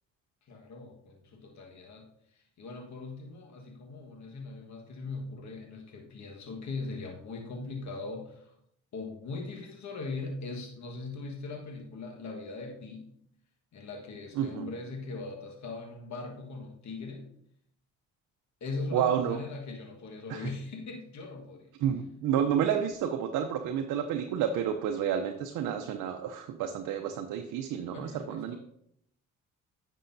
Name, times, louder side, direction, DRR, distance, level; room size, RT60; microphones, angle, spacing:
voice 1, 0.4-8.5 8.9-13.1 13.7-17.3 18.6-21.7 27.9-28.6, left 3 dB, 60° left, 2 dB, 1.5 m, -40 dB
voice 2, 14.4-14.7 18.9-19.4 20.3-20.5 21.8-28.6, right 9 dB, 80° right, 5 dB, 0.7 m, -30 dB
9.9 x 6.3 x 2.7 m, 0.72 s
supercardioid pair, 75°, 32 cm